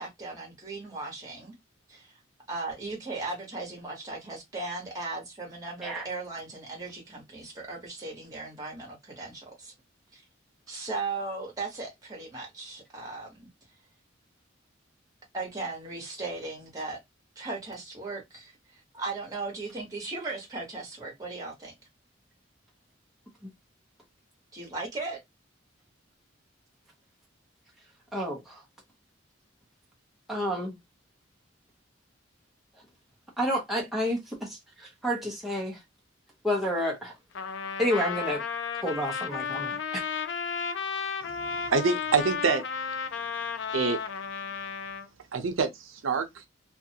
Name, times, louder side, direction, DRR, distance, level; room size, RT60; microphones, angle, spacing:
voice 1, 0.0-1.5 1.9-2.2 2.5-9.7 10.1-10.2 10.7-13.5 15.3-17.0 17.4-21.7 24.5-25.2, right 3 dB, 20° right, 1.1 m, -37 dB
voice 2, 28.1-28.6 30.3-30.8 33.4-35.8 36.4-37.1 37.8-38.4 38.8-40.0, equal, ahead, 0.6 m, -30 dB
Trumpet, 37.3-45.1, left 6 dB, 60° left, 0.4 m, -33 dB
voice 3, 41.2-42.6 43.7-44.0 45.3-46.4, right 5 dB, 85° right, 0.5 m, -27 dB
2.5 x 2.2 x 2.8 m
head